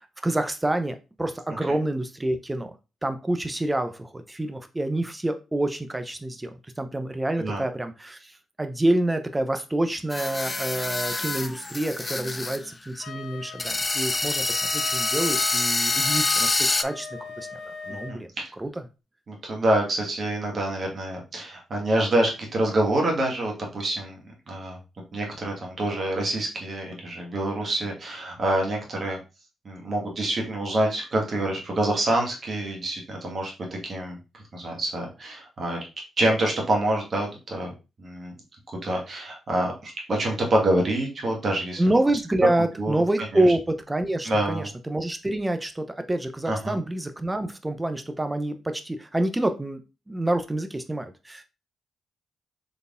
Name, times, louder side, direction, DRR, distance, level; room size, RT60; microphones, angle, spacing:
voice 1, 0.2-2.7 3.0-8.3 8.6-17.1 17.4-17.6 17.9-18.3 18.6-18.8 41.8-49.8 50.1-51.4, right 1 dB, 15° right, 8 dB, 0.6 m, -27 dB
sound 1, 10.1-12.6 12.9-13.0 13.6-16.8, left 2 dB, 25° left, 0.4 m, -26 dB
Wind instrument woodwind instrument, 13.0-18.2, left 6 dB, 80° left, 0.8 m, -37 dB
voice 2, 18.1-18.5 19.3-24.2 24.5-24.8 25.1-29.2 29.6-34.2 34.5-35.8 36.2-37.7 38.0-38.3 38.8-41.8 42.6-43.4 44.2-44.7 46.4-46.8, right 1 dB, 50° right, 0 dB, 1.6 m, -26 dB
4.1 x 3.4 x 2.5 m, 0.29 s
supercardioid pair, 55°, 0 cm